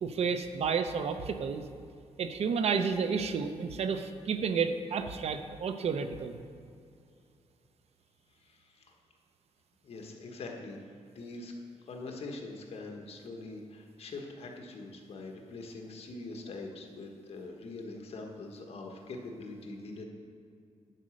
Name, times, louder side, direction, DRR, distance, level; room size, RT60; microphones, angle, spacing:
voice 1, 0.0-1.6 2.2-6.4, right 6 dB, 60° right, 8 dB, 0.6 m, -31 dB
voice 2, 8.3-8.9 9.8-10.8 11.1-11.5 11.8-20.0, left 3 dB, 60° left, 2 dB, 1.3 m, -43 dB
11.0 x 5.0 x 6.4 m, 2.5 s
wide cardioid pair, 135°, 12 cm